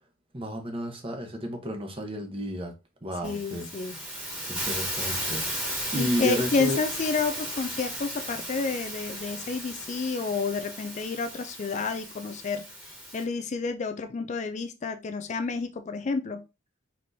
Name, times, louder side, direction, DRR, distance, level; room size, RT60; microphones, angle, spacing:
voice 1, 0.3-2.7 3.0-3.7 4.5-6.8, equal, 25° right, 1.0 m, -32 dB
voice 2, 3.2-4.0 6.0-16.4, left 4 dB, 35° left, 0.4 m, -30 dB
Hiss, 3.2-13.2, equal, 5° right, 1.4 m, -35 dB
4.6 x 4.3 x 2.7 m
head